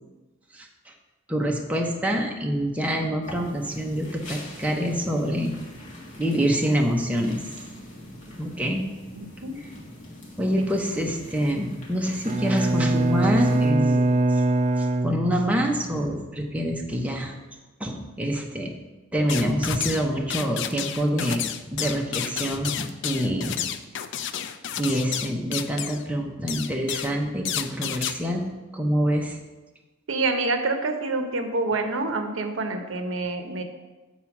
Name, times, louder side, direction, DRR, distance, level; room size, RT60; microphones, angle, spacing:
voice 1, 0.5-0.9 1.3-5.5 6.2-7.4 8.4-8.9 10.4-14.1 14.3-14.4 14.8-17.3 17.8-18.7 19.1-23.6 24.8-28.5 28.7-29.4, equal, 5° right, 0 dB, 0.7 m, -26 dB
sound 1, 3.2-13.7, left 1 dB, 40° left, 1.5 m, -43 dB
voice 2, 9.2-9.6 30.1-33.6, right 3 dB, 70° right, 6 dB, 0.7 m, -27 dB
Bowed string instrument, 12.3-15.8, right 2 dB, 35° right, 0.4 m, -23 dB
sound 2, 19.3-20.0 20.3-26.0 26.5-27.1 27.4-28.2, left 9 dB, 60° left, 0.4 m, -31 dB
7.4 x 4.3 x 5.9 m, 1.2 s
head